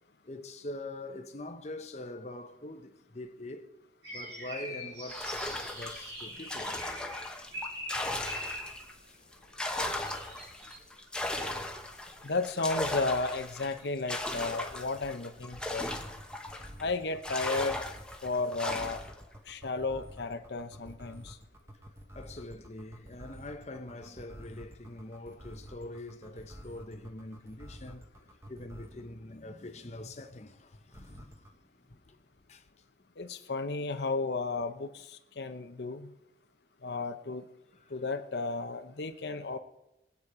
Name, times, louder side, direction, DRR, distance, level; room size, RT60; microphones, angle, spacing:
voice 1, 0.2-3.7 4.1-5.4 5.7-6.9 7.5-7.7 9.3-9.6 10.9-11.0 12.0-12.3 22.1-28.0 28.5-31.6 31.9-32.2 32.5-32.6 37.7-37.8, left 1 dB, 35° left, 0.9 m, -44 dB
sound 1, 4.0-8.9 9.7-10.8, equal, 75° right, 6.5 m, -43 dB
sound 2, 5.1-8.9 9.3-16.8 17.2-19.2, left 1 dB, 5° left, 1.0 m, -37 dB
voice 2, 12.2-15.9 16.8-17.9 18.2-19.0 19.5-21.4 33.2-36.1 36.8-37.4 37.9-39.6, left 3 dB, 70° left, 0.8 m, -33 dB
sound 3, 14.7-29.1 30.9-31.5, equal, 15° right, 1.2 m, -49 dB
21.5 x 8.5 x 4.9 m
head